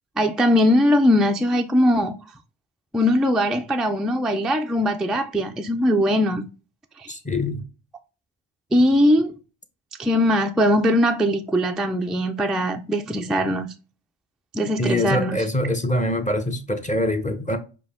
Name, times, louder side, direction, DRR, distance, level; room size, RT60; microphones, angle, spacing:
voice 1, 0.2-2.1 2.9-6.5 7.0-7.1 8.7-9.4 10.0-13.7 14.5-15.4, equal, ahead, 0.3 m, -20 dB
voice 2, 7.1-7.6 14.8-17.6, left 1 dB, 15° left, 0.8 m, -24 dB
5.0 x 2.2 x 3.5 m
supercardioid pair, 55°, 49 cm